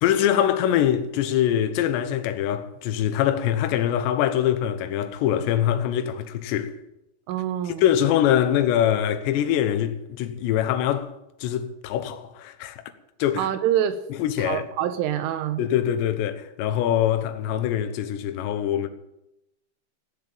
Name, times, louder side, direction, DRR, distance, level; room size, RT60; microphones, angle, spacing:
voice 1, 0.0-6.7 7.7-11.1 11.4-12.8 13.2-13.5 14.1-14.7 15.6-18.9, left 10 dB, 75° left, 2.9 m, -23 dB
voice 2, 7.3-7.8 13.4-14.0 14.4-15.6, right 11 dB, 90° right, 3.5 m, -25 dB
17.0 x 7.1 x 8.8 m
omnidirectional pair, 5.5 m